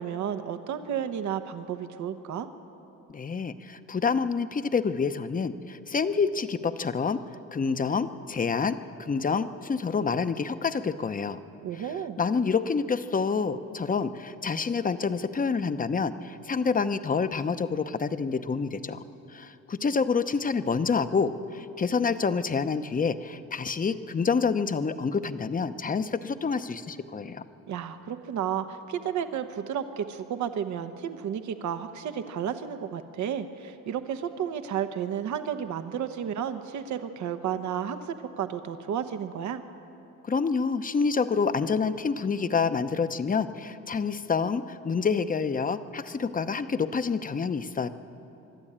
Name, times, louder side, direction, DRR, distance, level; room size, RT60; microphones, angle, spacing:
voice 1, 0.0-2.5 11.6-12.2 27.7-39.6, right 8 dB, 70° right, 9 dB, 1.1 m, -32 dB
voice 2, 3.1-7.2 7.5-11.4 11.7-11.9 12.2-19.0 19.3-27.4 40.2-47.9, left 5 dB, 30° left, 11 dB, 0.8 m, -27 dB
25.0 x 12.0 x 8.8 m, 2.9 s
cardioid pair, 90°, 30 cm